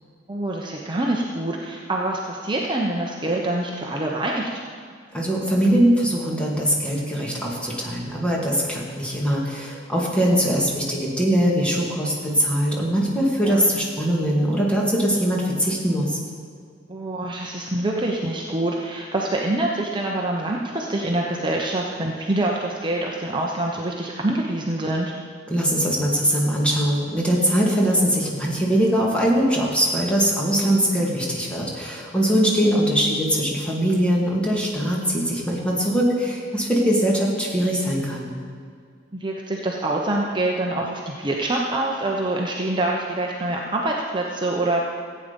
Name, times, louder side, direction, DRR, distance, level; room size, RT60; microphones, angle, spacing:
voice 1, 0.3-4.6 10.3-10.4 13.4-13.6 16.9-25.1 32.6-32.8 39.1-44.8, right 1 dB, 25° right, -1 dB, 0.9 m, -25 dB
voice 2, 5.1-16.2 25.5-38.3, equal, 5° left, -3 dB, 2.2 m, -21 dB
15.0 x 8.7 x 5.3 m, 2.2 s
head